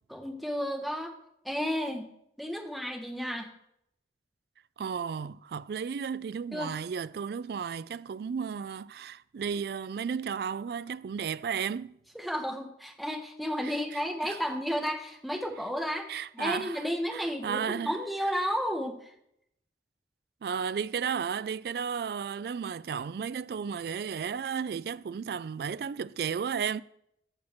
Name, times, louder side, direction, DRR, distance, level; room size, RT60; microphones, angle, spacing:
voice 1, 0.1-1.1 1.4-2.1 2.4-3.5 6.5-6.7 12.1-19.1, equal, ahead, 1.1 m, -32 dB
voice 2, 4.8-12.0 13.6-14.4 16.1-16.9 17.1-18.0 20.4-26.8, right 6 dB, 60° right, 0.3 m, -34 dB
12.5 x 4.3 x 7.1 m
head